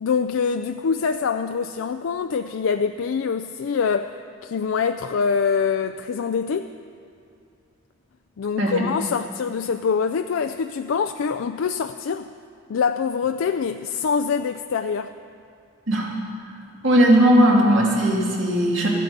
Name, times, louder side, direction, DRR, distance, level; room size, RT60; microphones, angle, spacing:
voice 1, 0.0-6.7 8.4-12.3 12.7-15.1, left 6 dB, 90° left, 8 dB, 0.4 m, -24 dB
voice 2, 16.8-18.9, equal, 70° right, -3 dB, 2.6 m, -17 dB
13.5 x 9.2 x 8.0 m, 2.5 s
head